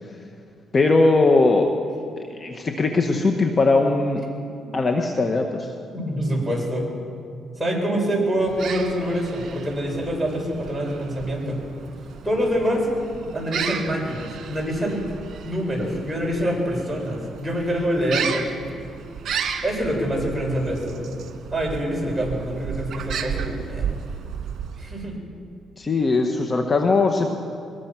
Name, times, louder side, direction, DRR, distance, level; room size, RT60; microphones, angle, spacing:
voice 1, 0.7-1.7 2.3-4.2 4.7-5.7 25.8-27.3, left 3 dB, 35° left, 3 dB, 1.6 m, -19 dB
voice 2, 5.9-6.9 7.6-11.6 12.2-12.9 13.3-15.0 15.4-18.4 19.6-21.0 21.5-23.9 24.8-25.1, equal, 10° right, -2 dB, 7.5 m, -25 dB
sound 1, 8.4-25.2, right 7 dB, 65° right, 2.0 m, -34 dB
23.0 x 20.5 x 6.3 m, 2.4 s
cardioid pair, 90°, 0 cm